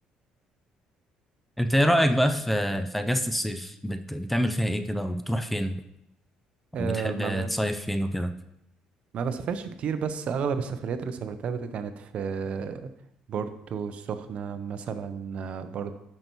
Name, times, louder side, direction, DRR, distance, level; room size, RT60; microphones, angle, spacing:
voice 1, 1.6-5.8 6.8-8.3, equal, 5° left, 9 dB, 0.5 m, -26 dB
voice 2, 6.7-7.5 9.1-12.9 13.3-15.9, right 6 dB, 55° right, 10 dB, 0.6 m, -32 dB
10.5 x 5.6 x 3.0 m, 0.83 s
cardioid pair, 105°, 2 cm